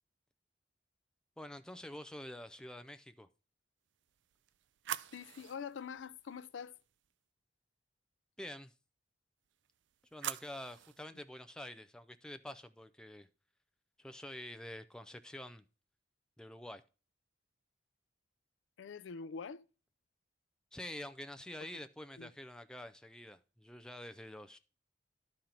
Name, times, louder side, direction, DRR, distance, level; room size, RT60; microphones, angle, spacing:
voice 1, 1.4-3.3 8.4-8.7 10.1-13.3 14.0-15.6 16.4-16.8 20.7-24.6, left 1 dB, 5° left, 0.3 m, -47 dB
sound 1, 4.0-7.1 9.5-11.0, right 10 dB, 75° right, 0.4 m, -46 dB
voice 2, 5.1-6.8 18.8-19.6 22.2-22.3, left 6 dB, 80° left, 0.4 m, -45 dB
11.5 x 4.3 x 3.8 m
head